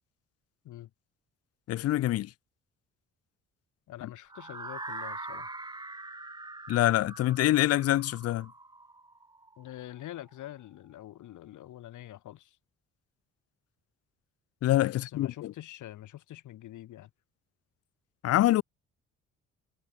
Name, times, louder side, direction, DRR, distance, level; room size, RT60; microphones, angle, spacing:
voice 1, 1.7-2.3 6.7-8.5 14.6-15.5 18.2-18.6, left 14 dB, 55° left, 0.4 m, -25 dB
voice 2, 3.9-5.5 9.6-12.6 14.9-17.1, left 14 dB, 80° left, 2.5 m, -45 dB
sound 1, 4.3-10.2, right 2 dB, 15° right, 1.7 m, -43 dB
cardioid pair, 90°, 30 cm